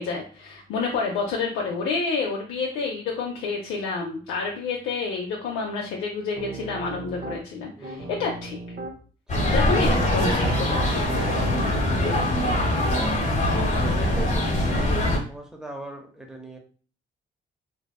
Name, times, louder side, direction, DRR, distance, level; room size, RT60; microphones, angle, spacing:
voice 1, 0.0-8.7 9.5-11.0, left 4 dB, 90° left, -1 dB, 0.4 m, -29 dB
Piano, 6.4-7.4 7.8-9.0 9.6-12.8, right 2 dB, 50° right, 0.6 m, -37 dB
voice 2, 7.8-8.4 9.3-9.8 13.8-14.8 15.3-16.6, right 1 dB, 5° right, 2 dB, 0.7 m, -41 dB
sound 1, 9.3-15.2, left 1 dB, 35° left, 1.0 m, -23 dB
2.6 x 2.3 x 2.2 m, 0.40 s
cardioid pair, 65°, 21 cm